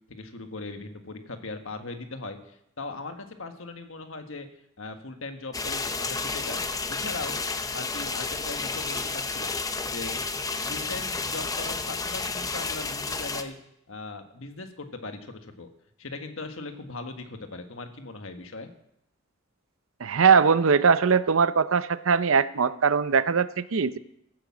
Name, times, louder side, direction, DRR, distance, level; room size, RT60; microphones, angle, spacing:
voice 1, 0.1-4.5 4.8-6.6 6.9-7.4 7.7-13.6 13.9-15.7 16.0-18.7, left 3 dB, 65° left, 6 dB, 1.5 m, -39 dB
sound 1, 5.5-13.4, left 4 dB, 15° left, 0.7 m, -31 dB
voice 2, 20.0-24.0, right 5 dB, 70° right, 15 dB, 0.6 m, -21 dB
14.5 x 8.8 x 7.3 m, 0.77 s
head